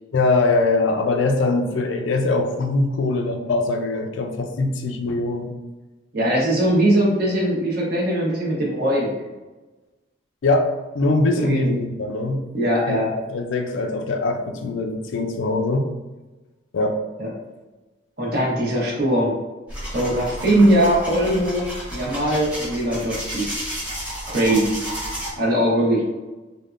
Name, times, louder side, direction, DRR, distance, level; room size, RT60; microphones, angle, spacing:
voice 1, 0.1-5.5 10.4-10.7 10.9-12.4 12.9-13.0 13.3-15.9 16.7-17.0, left 2 dB, 85° left, 5 dB, 0.4 m, -22 dB
voice 2, 6.1-9.1 11.4-11.7 12.5-13.1 17.2-17.3 18.2-19.3 19.9-21.6 21.9-23.5 24.3-24.8 25.4-26.0, right 1 dB, 55° right, -4 dB, 0.9 m, -20 dB
sound 1, 19.7-25.3, equal, 5° right, 0.9 m, -32 dB
3.4 x 2.2 x 2.4 m, 1.2 s
head